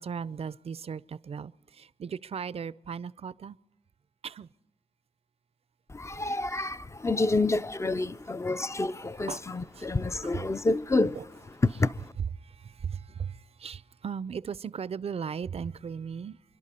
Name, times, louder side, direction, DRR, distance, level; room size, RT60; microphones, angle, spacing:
voice 1, 0.0-3.6 4.2-4.5 9.3-9.5 9.7-9.9 10.2-10.5 11.1-11.2 12.3-16.4, right 6 dB, 50° right, 0.4 m, -37 dB
voice 2, 5.9-11.2 11.6-12.1, left 2 dB, 20° left, 0.4 m, -28 dB
26.5 x 11.5 x 4.2 m
wide cardioid pair, 85°, 13 cm